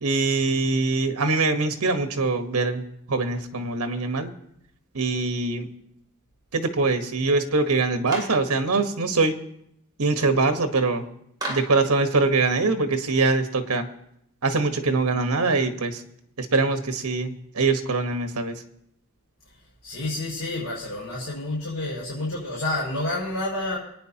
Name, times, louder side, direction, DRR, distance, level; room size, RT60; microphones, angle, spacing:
voice 1, 0.0-4.3 4.9-5.7 6.5-9.4 10.0-11.0 11.5-13.8 14.4-16.0 16.4-18.6, right 3 dB, 75° right, 7 dB, 1.2 m, -23 dB
Clapping, 8.1-8.4 11.4-11.8, right 1 dB, 20° right, 2.9 m, -32 dB
voice 2, 19.8-23.8, left 2 dB, 75° left, -7 dB, 5.8 m, -29 dB
24.0 x 9.5 x 2.9 m, 0.74 s
head